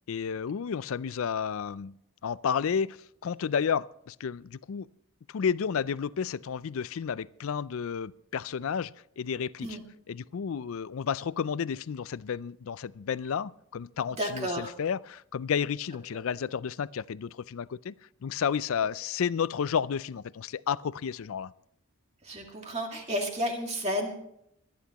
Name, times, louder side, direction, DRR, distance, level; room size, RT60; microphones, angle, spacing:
voice 1, 0.1-1.9 2.2-4.9 5.3-9.8 10.1-17.9 18.2-21.5, left 7 dB, 70° left, 0.4 m, -31 dB
voice 2, 14.2-14.7 22.2-24.1, equal, 30° right, 2.2 m, -31 dB
25.5 x 10.5 x 3.0 m
head